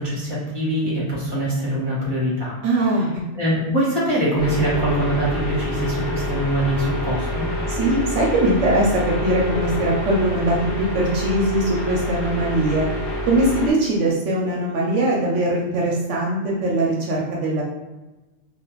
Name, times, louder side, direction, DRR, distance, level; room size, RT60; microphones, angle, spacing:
voice 1, 0.0-2.5 3.3-7.5, right 1 dB, 20° right, -7 dB, 1.0 m, -23 dB
voice 2, 2.6-3.1 7.7-12.9 13.3-17.6, right 1 dB, 75° right, -3 dB, 0.9 m, -21 dB
sound 1, 4.4-13.7, left 1 dB, 60° left, 0.9 m, -27 dB
2.4 x 2.3 x 2.9 m, 1.1 s
omnidirectional pair, 1.3 m